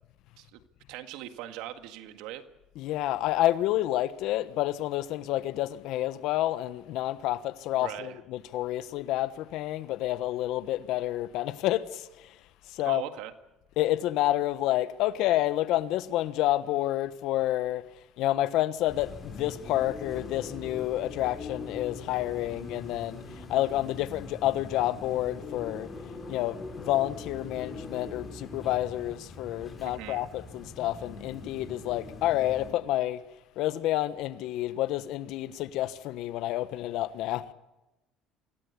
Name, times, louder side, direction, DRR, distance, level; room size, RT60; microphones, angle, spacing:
voice 1, 0.9-2.4 7.8-8.2 12.8-13.3 29.8-30.3, right 12 dB, 80° right, 1.8 m, -40 dB
voice 2, 2.8-12.4 12.7-13.0 13.8-17.9 18.2-25.9 26.3-33.2 33.6-37.5, left 14 dB, 70° left, 1.3 m, -29 dB
sound 1, 18.9-32.7, left 3 dB, 25° left, 6.2 m, -42 dB
26.0 x 17.0 x 8.4 m
supercardioid pair, 95°, 0 cm